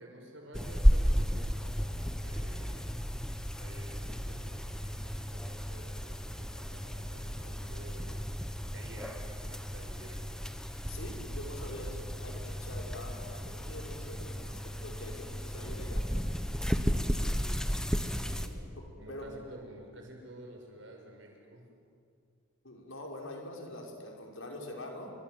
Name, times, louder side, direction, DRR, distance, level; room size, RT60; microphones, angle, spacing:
voice 1, 0.0-2.9 3.6-11.0 16.6-17.5 17.8-18.7 19.0-21.7, right 1 dB, 65° right, 1 dB, 6.4 m, -52 dB
sound 1, 0.5-18.5, equal, 5° left, 1.2 m, -33 dB
voice 2, 10.9-16.1 18.8-19.3 22.6-25.1, left 1 dB, 70° left, 1 dB, 5.4 m, -44 dB
29.5 x 24.5 x 7.9 m, 2.4 s
head